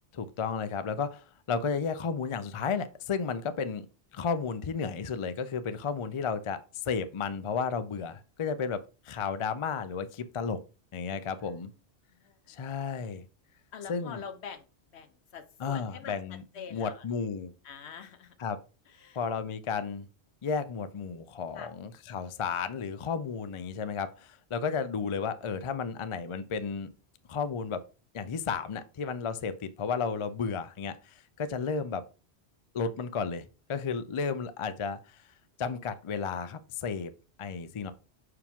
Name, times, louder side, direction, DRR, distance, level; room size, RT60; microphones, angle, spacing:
voice 1, 0.1-3.9 4.1-10.6 10.9-11.7 12.5-13.2 13.9-14.2 15.6-16.4 16.7-17.5 18.4-18.6 19.2-20.1 20.4-26.9 27.3-27.8 28.1-32.0 32.7-35.2 35.6-37.1 37.4-37.9, left 5 dB, 50° left, 0.3 m, -33 dB
voice 2, 12.1-12.5 13.7-14.7 14.9-17.0 17.6-18.3 18.9-19.2 21.5-21.7, left 6 dB, 75° left, 1.1 m, -45 dB
5.8 x 4.8 x 3.6 m
omnidirectional pair, 1.1 m